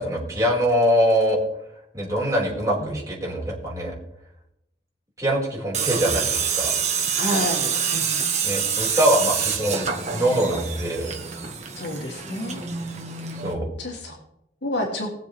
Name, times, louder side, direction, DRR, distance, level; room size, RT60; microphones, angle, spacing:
voice 1, 0.0-1.4 1.9-3.9 5.2-6.7 8.4-9.9 10.1-11.1 13.4-13.6, equal, 20° right, -5 dB, 4.7 m, -23 dB
Tools, 5.7-13.5, right 6 dB, 40° right, 1.5 m, -26 dB
voice 2, 7.2-8.2 11.8-12.7 13.8-14.2 14.6-15.1, left 1 dB, 90° left, -2 dB, 2.8 m, -29 dB
21.0 x 7.3 x 3.4 m, 0.81 s
head